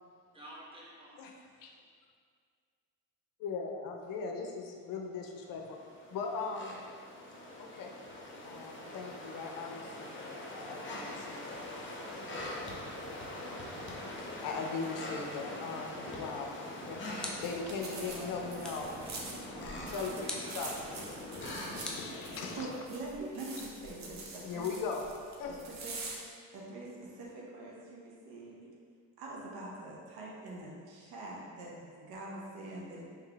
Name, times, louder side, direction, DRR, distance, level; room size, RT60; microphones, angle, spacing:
voice 1, 0.3-1.4 19.9-21.2, equal, 15° right, -7 dB, 1.3 m, -50 dB
voice 2, 3.4-5.8 6.1-6.8 7.6-7.9 8.4-11.9 14.2-17.0 17.4-19.0 19.5-20.1 20.5-20.7 21.7-22.7 24.4-25.0 25.4-25.6, left 5 dB, 60° left, 2 dB, 0.6 m, -39 dB
sound 1, 5.4-22.7, left 1 dB, 30° left, 0.9 m, -43 dB
sound 2, 17.2-17.7 18.6-19.0 20.3-20.6 21.8-22.7, left 1 dB, ahead, 0.6 m, -43 dB
sound 3, 17.4-26.2, right 3 dB, 45° right, 0.8 m, -46 dB
voice 3, 22.6-24.7 25.8-26.1 26.5-28.7 29.2-33.0, right 2 dB, 70° right, -3 dB, 1.0 m, -44 dB
3.7 x 3.3 x 3.3 m, 2.1 s
supercardioid pair, 65°, 38 cm